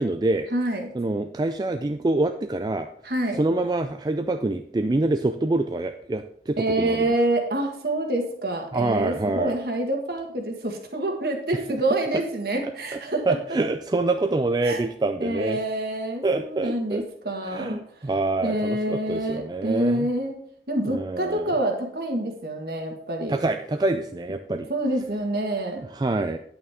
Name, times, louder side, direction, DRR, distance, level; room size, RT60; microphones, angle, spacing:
voice 1, 0.0-0.5 0.9-2.9 3.4-7.1 8.7-9.6 12.6-12.7 13.3-15.6 16.2-17.0 17.5-20.1 20.9-21.5 23.3-24.7 25.9-26.4, right 2 dB, 25° right, 7 dB, 0.3 m, -26 dB
voice 2, 0.5-0.9 3.0-3.4 6.6-13.3 14.6-14.8 15.2-17.8 18.4-20.4 20.7-23.4 24.7-25.9, right 1 dB, 55° right, 3 dB, 1.7 m, -27 dB
9.3 x 8.4 x 3.6 m, 0.65 s
head